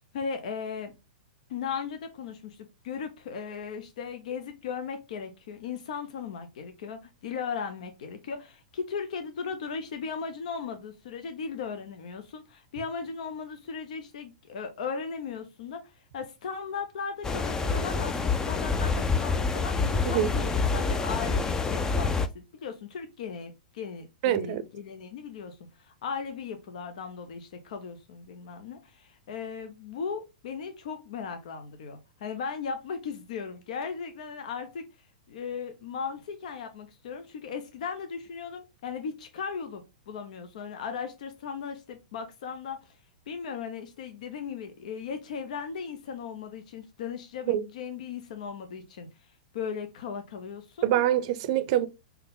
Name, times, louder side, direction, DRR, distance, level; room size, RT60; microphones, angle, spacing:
voice 1, 0.1-0.9 1.5-34.9 35.3-42.9 43.3-49.1 49.5-50.9, left 6 dB, 65° left, 0.7 m, -37 dB
sound 1, 17.2-22.3, left 4 dB, 15° left, 0.4 m, -27 dB
voice 2, 24.2-24.6 47.5-47.6 50.8-51.9, right 12 dB, 50° right, 0.5 m, -25 dB
3.7 x 2.8 x 3.7 m
hypercardioid pair, 115°, 4 cm